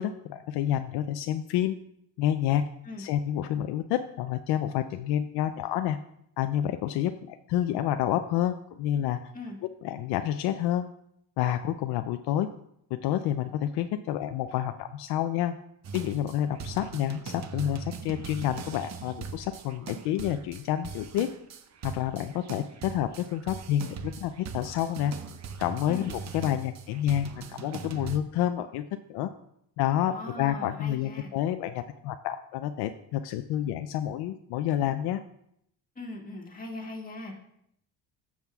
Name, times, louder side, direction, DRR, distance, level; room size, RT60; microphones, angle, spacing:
voice 1, 0.0-1.8 2.2-2.7 3.0-6.0 6.4-9.3 9.8-10.9 11.4-12.5 12.9-15.6 15.9-21.3 21.8-25.1 25.6-28.8 29.1-29.3 29.8-35.2, left 11 dB, 85° left, 8 dB, 0.5 m, -29 dB
sound 1, 15.8-28.2, right 5 dB, 45° right, 0.8 m, -40 dB
voice 2, 30.0-31.3 36.0-37.4, left 2 dB, 20° left, 0 dB, 1.9 m, -40 dB
14.0 x 7.3 x 2.4 m, 0.74 s
cardioid pair, 110°, 38 cm